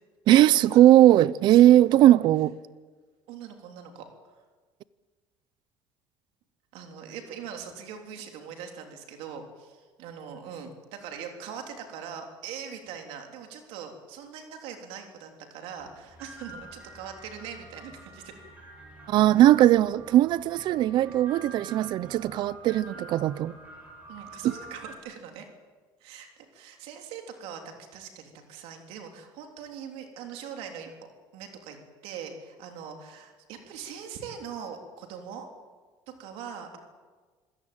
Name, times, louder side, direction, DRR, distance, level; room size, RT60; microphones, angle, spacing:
voice 1, 0.3-2.5 19.1-23.5, right 13 dB, 50° right, 0.6 m, -19 dB
voice 2, 3.3-4.1 6.7-18.3 24.1-25.5 26.0-30.9 31.3-35.5 36.2-36.8, right 7 dB, 70° right, 3.5 m, -41 dB
sound 1, 15.8-25.0, right 2 dB, 15° right, 7.0 m, -47 dB
26.0 x 17.0 x 9.0 m
cardioid pair, 155°, 10 cm